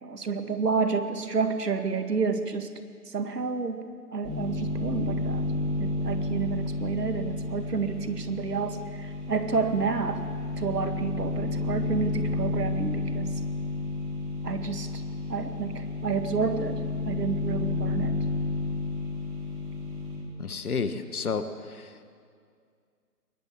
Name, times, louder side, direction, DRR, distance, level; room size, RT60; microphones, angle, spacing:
voice 1, 0.0-2.7 3.1-3.8 4.1-5.5 5.8-10.2 10.6-13.3 14.4-15.0 15.3-16.8 17.1-18.1, right 5 dB, 70° right, 8 dB, 2.1 m, -30 dB
sound 1, 4.2-20.2, left 2 dB, 30° right, 6.2 m, -31 dB
voice 2, 20.4-21.9, left 5 dB, 60° left, 10 dB, 1.6 m, -31 dB
21.5 x 18.0 x 8.6 m, 2.2 s
figure-of-eight pair, 155°, 50 cm